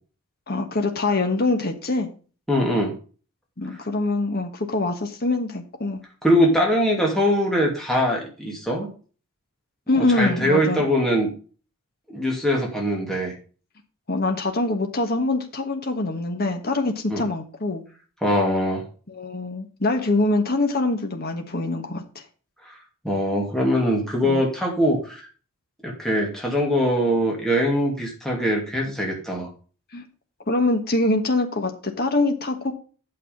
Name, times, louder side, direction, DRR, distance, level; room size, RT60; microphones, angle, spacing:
voice 1, 0.5-2.1 3.6-6.0 9.9-10.8 14.1-17.8 19.1-22.2 24.2-24.4 29.9-30.0 30.5-32.7, left 2 dB, 45° left, 4 dB, 1.4 m, -24 dB
voice 2, 2.5-2.9 6.2-8.9 10.0-11.3 12.1-13.3 17.1-17.2 18.2-18.8 22.7-22.8 23.0-25.2 25.8-29.5, equal, ahead, -2 dB, 2.5 m, -22 dB
8.9 x 6.7 x 5.2 m, 0.38 s
head